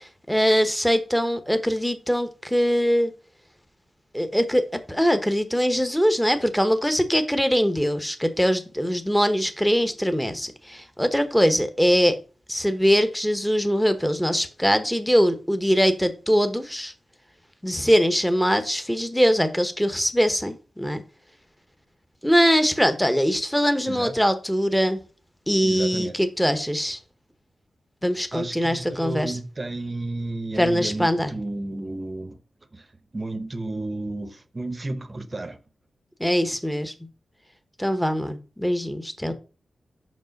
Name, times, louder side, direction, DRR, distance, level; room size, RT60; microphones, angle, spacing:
voice 1, 0.3-3.1 4.1-12.1 12.5-16.9 17.6-21.0 22.2-25.0 25.5-27.0 28.0-29.3 30.6-31.3 36.2-36.9 37.8-39.3, equal, 5° left, 1.0 m, -22 dB
voice 2, 25.6-26.2 28.3-32.4 32.7-35.6, right 2 dB, 35° right, 0.8 m, -32 dB
5.5 x 5.3 x 5.2 m
cardioid pair, 55°, 0 cm